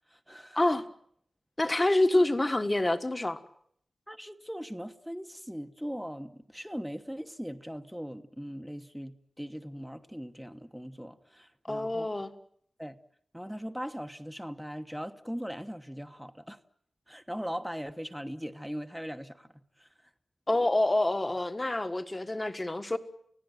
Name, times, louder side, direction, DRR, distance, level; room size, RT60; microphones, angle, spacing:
voice 1, 0.1-0.6 1.8-1.9 4.1-12.1 12.8-13.0 13.3-16.6 17.1-19.5 19.8-19.9, equal, ahead, 1.1 m, -40 dB
voice 2, 1.6-3.4 11.7-12.3 20.5-23.0, left 1 dB, 25° left, 1.6 m, -27 dB
29.5 x 16.5 x 9.3 m
wide cardioid pair, 95°, 0 cm